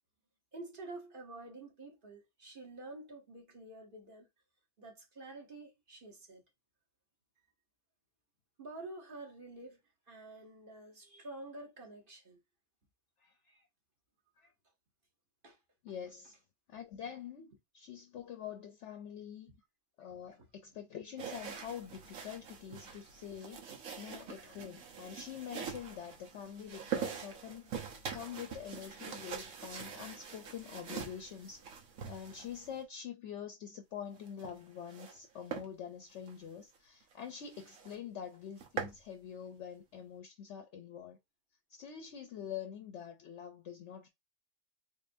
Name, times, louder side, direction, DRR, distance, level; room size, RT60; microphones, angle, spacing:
voice 1, 0.5-4.3 4.8-6.4 8.6-9.8 10.1-12.4 15.4-15.6 19.5-19.6 20.4-20.5, right 2 dB, 40° right, 1.1 m, -49 dB
voice 2, 13.2-13.7 14.4-14.5 15.8-16.4 16.7-19.5 20.0-31.6 32.1-41.2 41.7-44.1, left 8 dB, 65° left, 0.8 m, -46 dB
sound 1, 21.2-32.8 34.1-35.2 35.5-35.7 36.2-36.3 36.7-36.8 37.1-37.2 37.5-38.0 38.3-39.0, right 7 dB, 75° right, 1.3 m, -44 dB
3.7 x 3.5 x 2.6 m
omnidirectional pair, 1.4 m